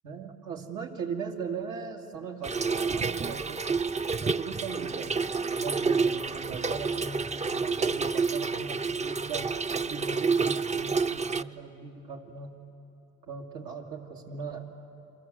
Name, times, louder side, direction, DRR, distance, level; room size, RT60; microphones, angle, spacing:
voice 1, 0.0-3.7 4.1-9.5 9.9-12.6 13.2-14.7, right 5 dB, 85° right, 0 dB, 2.7 m, -39 dB
Trickle dribble / Fill (with liquid), 2.4-11.4, right 4 dB, 25° right, 0.5 m, -29 dB
29.5 x 23.5 x 7.8 m, 2.9 s
cardioid pair, 90°, 30 cm